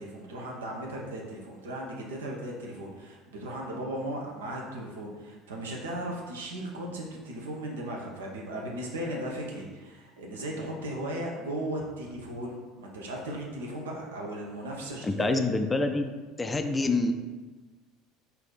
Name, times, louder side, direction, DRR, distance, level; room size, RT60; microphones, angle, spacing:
voice 1, 0.0-15.4, right 1 dB, 70° right, -1 dB, 0.7 m, -36 dB
voice 2, 15.0-16.1 16.4-17.1, left 3 dB, 15° left, 7 dB, 0.4 m, -26 dB
4.3 x 2.7 x 3.9 m, 1.3 s
figure-of-eight pair, 65°, 0 cm